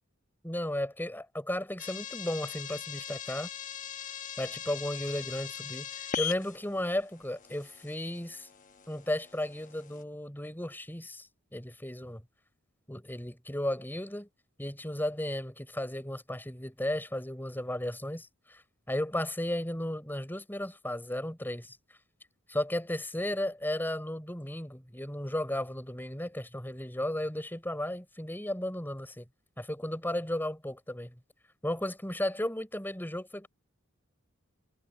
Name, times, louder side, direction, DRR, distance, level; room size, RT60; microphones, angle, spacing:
voice 1, 0.4-3.5 4.4-8.5 8.9-12.2 12.9-14.3 14.6-18.6 18.9-21.8 22.5-29.2 29.6-31.1 31.6-33.5, left 1 dB, 10° left, 4.4 m, -34 dB
sound 1, 1.8-10.0, left 8 dB, 40° left, 1.0 m, -41 dB
head